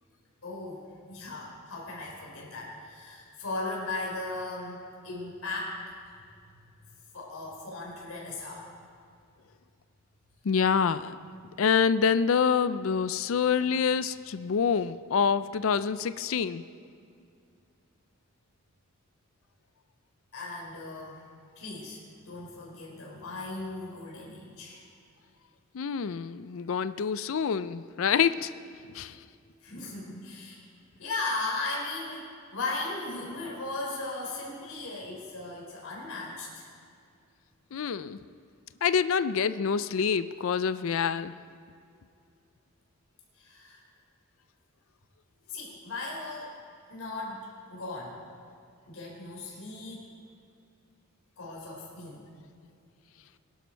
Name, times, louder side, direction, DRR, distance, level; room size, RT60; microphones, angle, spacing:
voice 1, 0.4-0.8 1.1-5.8 7.1-8.7 20.3-21.2 21.6-24.9 29.6-30.6 31.0-36.7 43.3-43.9 45.5-46.6 46.9-48.2 48.9-50.0 51.4-52.3, left 2 dB, 85° left, -3 dB, 4.2 m, -37 dB
voice 2, 10.5-11.2 11.6-16.6 25.7-28.5 28.9-29.1 37.7-38.2 38.8-41.3, left 6 dB, 65° left, 14 dB, 0.4 m, -26 dB
20.5 x 11.5 x 4.5 m, 2.4 s
head